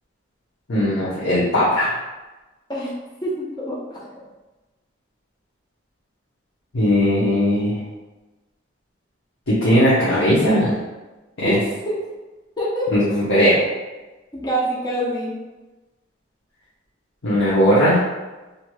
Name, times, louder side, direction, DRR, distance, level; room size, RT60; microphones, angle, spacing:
voice 1, 0.7-2.0 6.7-7.8 9.5-10.7 11.4-11.6 12.9-13.6 17.2-18.0, equal, 85° left, -10 dB, 0.8 m, -18 dB
voice 2, 3.2-4.0 11.4-11.6 11.9-12.0 12.6-13.1 14.4-15.3, right 1 dB, 20° left, -6 dB, 0.5 m, -25 dB
3.0 x 2.7 x 2.3 m, 1.1 s
head